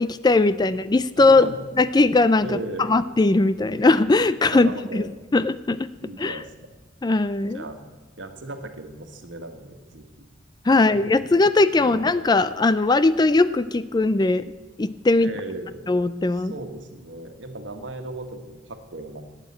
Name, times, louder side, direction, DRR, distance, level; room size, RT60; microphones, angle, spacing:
voice 1, 0.0-1.5 1.8-2.6 2.9-5.1 5.3-5.9 6.2-6.4 7.0-7.6 10.7-14.4 14.8-15.3 15.9-16.5, left 3 dB, 20° left, 15 dB, 0.4 m, -19 dB
voice 2, 1.2-1.6 2.4-2.9 4.5-5.1 6.0-6.5 7.5-10.2 10.7-10.8 11.7-12.1 15.2-15.8 16.3-19.2, right 2 dB, 70° right, 6 dB, 1.6 m, -36 dB
12.0 x 9.1 x 8.5 m, 1.3 s
head